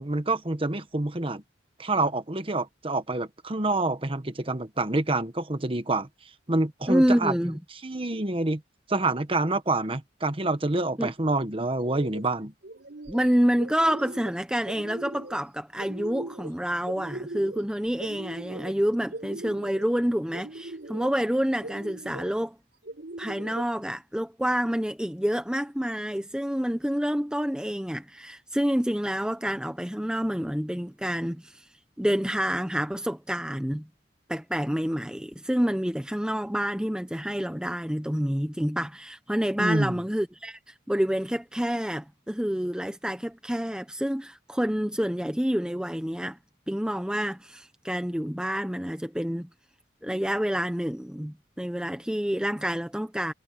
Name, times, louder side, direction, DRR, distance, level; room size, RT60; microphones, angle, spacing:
voice 1, 0.0-1.4 1.8-6.1 6.5-7.3 7.8-8.6 8.9-12.5 39.6-40.0, right 2 dB, 30° right, 1.2 m, -27 dB
voice 2, 6.9-7.6 11.0-11.1 13.1-22.6 23.2-31.6 32.0-33.9 34.3-46.4 46.7-49.5 50.0-53.3, equal, 5° right, 0.9 m, -28 dB
sound 1, 11.7-12.2 12.6-13.3 13.6-14.3 14.7-15.4 15.8-16.5 16.9-17.7 18.0-18.7 19.1-19.8 20.3-21.1 21.6-22.3 22.8-23.6, right 2 dB, 60° right, 5.2 m, -40 dB
head